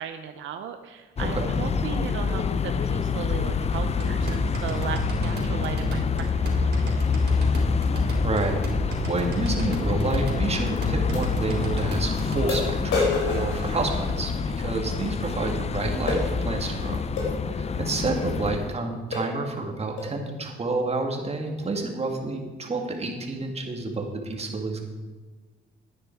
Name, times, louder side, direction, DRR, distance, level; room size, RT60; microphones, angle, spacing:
voice 1, 0.0-7.2 17.6-17.7, right 8 dB, 75° right, 7 dB, 0.7 m, -36 dB
sound 1, 1.2-18.7, left 5 dB, 30° left, 0.5 m, -27 dB
sound 2, 3.7-12.5, equal, 60° right, 3.8 m, -31 dB
voice 2, 8.2-17.0 17.5-24.8, right 3 dB, 30° right, 2 dB, 2.2 m, -29 dB
sound 3, 10.1-10.2 11.1-11.2 11.9-12.0 12.5-14.4 16.1-16.3 17.2-17.4 18.1-18.3 18.7-18.8 19.1-19.4 20.0-20.2, left 3 dB, 80° left, 3.7 m, -29 dB
10.5 x 9.8 x 4.6 m, 1.3 s
cardioid pair, 90°, 20 cm